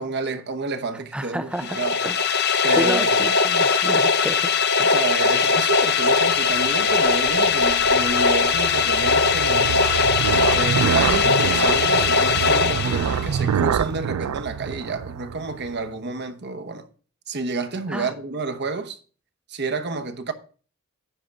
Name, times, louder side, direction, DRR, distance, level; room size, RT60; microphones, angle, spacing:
voice 1, 0.0-2.0 2.6-3.2 4.9-9.8 10.5-16.9 17.3-19.0 19.5-20.3, right 3 dB, 50° right, 1.0 m, -29 dB
voice 2, 1.1-1.8 2.0-2.2 2.7-4.5 4.8-4.9 17.9-18.1, right 1 dB, 5° right, 0.3 m, -30 dB
sound 1, 1.6-13.5, left 4 dB, 50° left, 0.7 m, -20 dB
sound 2, 6.3-15.8, right 8 dB, 85° right, 0.3 m, -27 dB
10.0 x 3.8 x 6.9 m
head